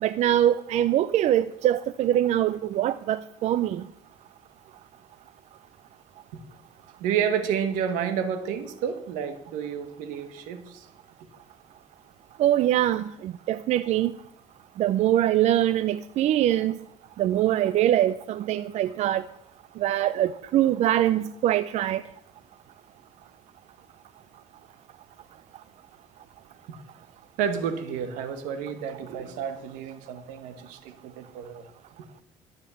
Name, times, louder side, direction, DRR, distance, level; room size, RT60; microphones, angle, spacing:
voice 1, 0.0-3.8 12.4-14.1 14.8-16.8 17.2-19.2 19.8-22.0, right 12 dB, 65° right, 0.5 m, -23 dB
voice 2, 7.0-10.9 27.4-31.7, right 8 dB, 85° right, 1.5 m, -30 dB
13.0 x 7.5 x 7.1 m
supercardioid pair, 85°, 13 cm